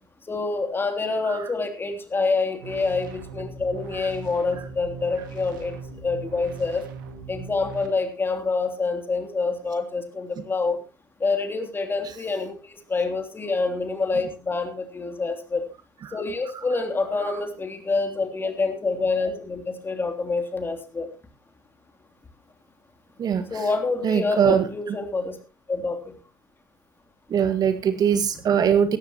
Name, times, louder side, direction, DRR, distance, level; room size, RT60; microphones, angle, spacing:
voice 1, 0.3-6.8 7.3-10.8 11.2-15.6 16.1-21.1 23.5-25.4 25.7-26.1, left 3 dB, 20° left, 6 dB, 3.3 m, -27 dB
sound 1, 2.6-7.9, right 5 dB, 70° right, 2.2 m, -39 dB
voice 2, 23.2-23.7 24.0-25.0 27.3-29.0, right 8 dB, 35° right, 9 dB, 1.8 m, -22 dB
17.5 x 14.5 x 3.0 m, 0.31 s
figure-of-eight pair, 75°, 11 cm